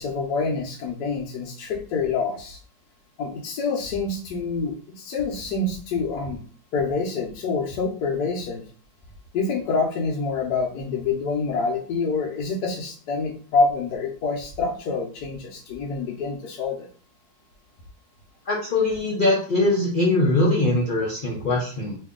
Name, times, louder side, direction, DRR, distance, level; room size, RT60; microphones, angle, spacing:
voice 1, 0.0-2.6 3.2-6.4 6.7-8.6 9.3-16.9, left 4 dB, 70° left, -1 dB, 1.2 m, -26 dB
voice 2, 18.5-22.0, left 2 dB, 85° left, -3 dB, 0.4 m, -22 dB
3.0 x 2.7 x 3.6 m, 0.43 s
omnidirectional pair, 2.0 m